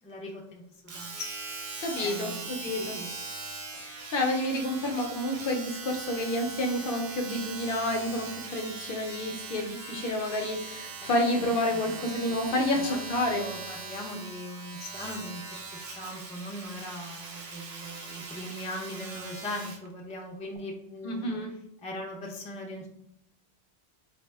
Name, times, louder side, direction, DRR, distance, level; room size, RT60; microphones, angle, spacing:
voice 1, 0.0-1.3 2.0-3.1 11.0-12.0 12.3-13.0 13.3-21.4 21.8-22.9, left 1 dB, 10° left, -2 dB, 0.4 m, -40 dB
Domestic sounds home sounds, 0.9-19.9 20.6-20.7, right 4 dB, 55° right, 0.6 m, -41 dB
voice 2, 1.8-3.0 3.7-13.5 21.0-21.5, left 1 dB, 60° left, 2 dB, 0.7 m, -29 dB
4.1 x 2.1 x 3.3 m, 0.75 s
omnidirectional pair, 1.1 m